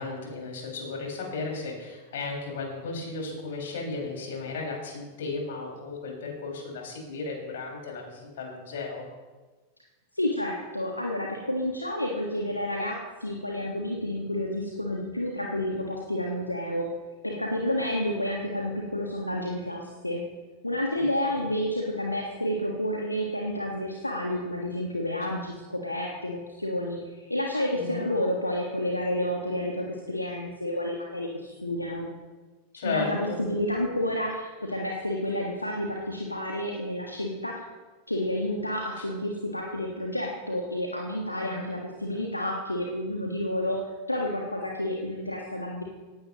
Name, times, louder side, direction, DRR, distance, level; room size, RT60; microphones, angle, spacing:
voice 1, 0.0-9.1 21.4-21.5 27.7-28.1 32.8-33.4 39.0-39.1 41.4-41.7, left 4 dB, 60° left, -1 dB, 5.6 m, -34 dB
voice 2, 10.1-16.9 17.2-20.2 20.6-32.1 32.8-37.6 38.1-43.8 44.1-45.8, left 1 dB, 85° left, -1 dB, 1.6 m, -30 dB
18.5 x 16.0 x 3.0 m, 1.3 s
figure-of-eight pair, 90°, 0 cm